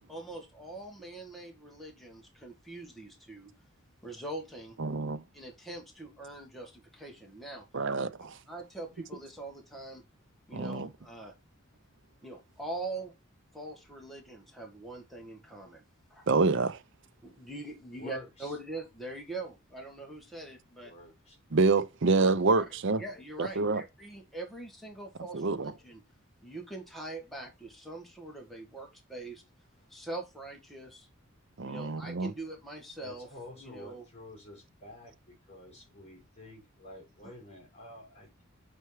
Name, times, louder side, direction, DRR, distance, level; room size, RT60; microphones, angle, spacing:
voice 1, 0.1-3.5 4.0-4.8 5.3-7.7 8.5-10.0 10.5-11.3 12.2-13.1 13.5-15.8 16.1-16.3 17.2-20.9 22.5-22.6 22.9-26.0 26.4-29.4 29.9-31.1 31.6-33.3 33.6-34.0 37.2-37.3, right 2 dB, ahead, 1.7 m, -43 dB
voice 2, 4.8-5.2 7.7-8.4 10.5-10.9 16.3-16.8 21.5-23.0 23.4-23.8 25.3-25.7 31.6-32.3, right 3 dB, 60° right, 0.6 m, -27 dB
voice 3, 18.0-18.6 20.8-21.4 33.0-38.5, left 1 dB, 30° left, 4.4 m, -49 dB
6.8 x 4.5 x 4.8 m
head